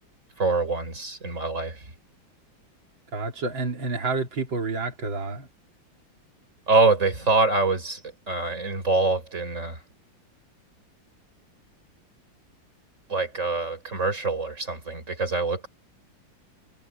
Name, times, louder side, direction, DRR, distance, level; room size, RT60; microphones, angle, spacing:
voice 1, 0.4-1.8 6.7-8.0 8.3-9.8 13.1-15.7, right 3 dB, 40° right, 5.7 m, -24 dB
voice 2, 3.1-5.5, right 3 dB, 90° right, 3.9 m, -29 dB
omnidirectional pair, 2.0 m